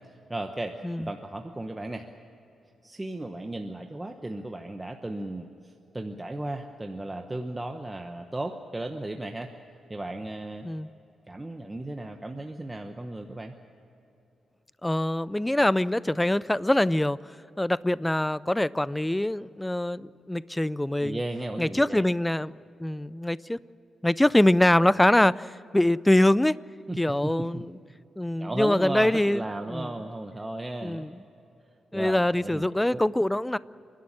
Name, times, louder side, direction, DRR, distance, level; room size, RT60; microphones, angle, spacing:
voice 1, 0.0-2.1 2.8-9.5 9.9-10.7 11.3-13.5 21.0-22.1 26.9-27.7 28.4-31.1 31.9-33.0, right 2 dB, 15° right, 4 dB, 1.0 m, -35 dB
voice 2, 14.8-17.2 17.6-21.2 21.6-22.5 22.8-23.6 24.0-26.6 27.0-27.7 28.2-29.4 29.7-29.9 30.8-31.1 31.9-33.6, left 1 dB, 10° left, 19 dB, 0.4 m, -24 dB
28.5 x 11.5 x 9.8 m, 2.9 s
cardioid pair, 120°, 0 cm